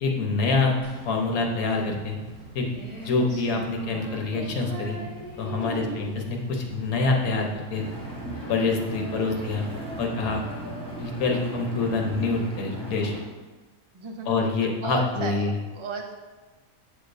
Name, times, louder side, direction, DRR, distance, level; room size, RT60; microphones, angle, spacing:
voice 1, 0.0-0.7 1.1-2.2 2.5-2.7 3.0-5.0 5.4-7.8 8.5-9.7 10.0-10.4 11.0-13.1 14.3-15.5, left 3 dB, 85° left, 1 dB, 1.4 m, -26 dB
sound 1, 0.8-11.4, right 1 dB, 65° right, 2.4 m, -46 dB
Female singing, 2.3-13.2, equal, 35° left, 2.1 m, -43 dB
voice 2, 5.5-6.0 13.9-14.4 14.8-16.1, right 3 dB, 40° right, 2 dB, 0.4 m, -34 dB
Engine, 7.7-13.2, right 2 dB, 5° left, 0.9 m, -37 dB
7.3 x 6.8 x 2.6 m, 1.3 s
omnidirectional pair, 1.5 m